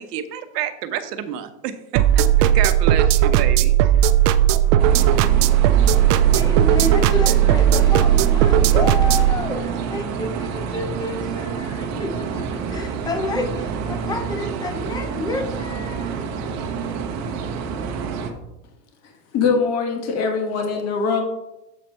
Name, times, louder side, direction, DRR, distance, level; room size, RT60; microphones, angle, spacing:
voice 1, 0.0-3.9, right 10 dB, 80° right, 9 dB, 1.0 m, -29 dB
sound 1, 2.0-9.3, right 11 dB, 50° right, 0.5 m, -16 dB
sound 2, 4.8-18.3, right 6 dB, 35° right, 1.0 m, -28 dB
voice 2, 6.4-16.3, left 2 dB, 10° left, 6 dB, 0.5 m, -29 dB
voice 3, 19.3-21.2, left 5 dB, 35° left, 3 dB, 1.4 m, -22 dB
7.5 x 4.4 x 5.3 m, 0.92 s
supercardioid pair, 135°, 47 cm